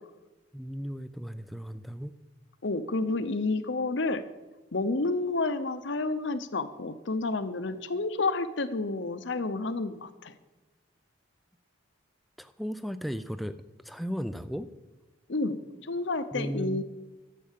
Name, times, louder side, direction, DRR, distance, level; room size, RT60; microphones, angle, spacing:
voice 1, 0.5-2.1 12.4-13.6 13.8-14.7 16.3-16.8, equal, ahead, 11 dB, 0.4 m, -35 dB
voice 2, 2.6-4.2 4.7-10.4 15.3-16.8, left 3 dB, 65° left, 12 dB, 0.8 m, -30 dB
12.0 x 7.6 x 7.4 m, 1.2 s
head